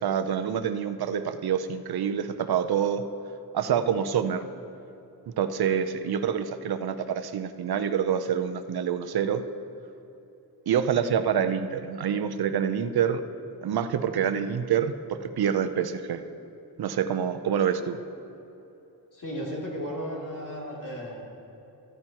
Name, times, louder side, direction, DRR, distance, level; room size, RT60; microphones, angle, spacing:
voice 1, 0.0-3.1 3.5-4.4 5.4-9.4 10.7-13.2 13.6-16.2 16.8-18.0, right 8 dB, 70° right, 9 dB, 0.6 m, -26 dB
voice 2, 19.1-21.2, equal, 55° left, -4 dB, 2.7 m, -34 dB
14.0 x 13.5 x 2.9 m, 2.9 s
wide cardioid pair, 135°, 39 cm